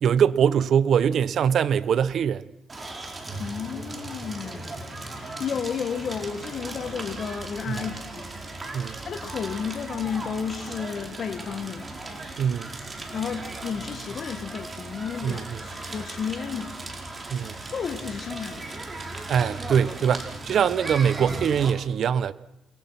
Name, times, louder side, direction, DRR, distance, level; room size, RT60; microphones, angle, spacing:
voice 1, 0.0-2.4 7.7-7.9 8.7-9.0 12.4-12.7 15.2-15.6 17.3-17.6 19.3-22.3, right 8 dB, 65° right, 1.0 m, -23 dB
Crackle, 2.7-21.7, right 2 dB, 30° right, 4.9 m, -37 dB
voice 2, 3.4-8.7 9.1-11.9 13.1-16.7 17.7-18.7, left 6 dB, 55° left, 1.9 m, -32 dB
sound 1, 6.8-14.8, right 6 dB, 85° right, 3.6 m, -56 dB
29.5 x 22.0 x 5.9 m
cardioid pair, 90°, 0 cm